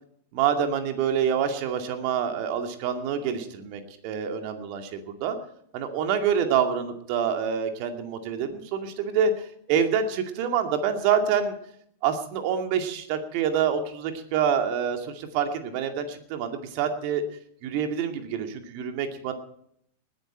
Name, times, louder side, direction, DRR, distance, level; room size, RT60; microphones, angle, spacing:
voice 1, 0.3-5.4 5.7-11.5 12.0-17.2 17.6-19.3, right 7 dB, 45° right, 5 dB, 2.3 m, -26 dB
20.0 x 10.5 x 4.6 m, 0.68 s
figure-of-eight pair, 95°, 0 cm